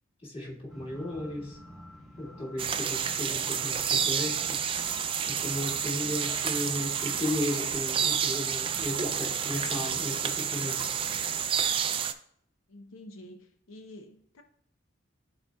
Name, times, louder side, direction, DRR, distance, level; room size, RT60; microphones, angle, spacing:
voice 1, 0.2-1.6 2.2-4.6 5.3-10.8, left 1 dB, 30° left, -3 dB, 1.8 m, -35 dB
sound 1, 0.7-11.4, left 1 dB, ahead, 1.3 m, -49 dB
sound 2, 2.6-12.1, right 8 dB, 25° right, 0.4 m, -30 dB
voice 2, 12.7-14.4, left 1 dB, 85° left, 4 dB, 0.7 m, -48 dB
12.5 x 4.2 x 2.3 m, 0.67 s
head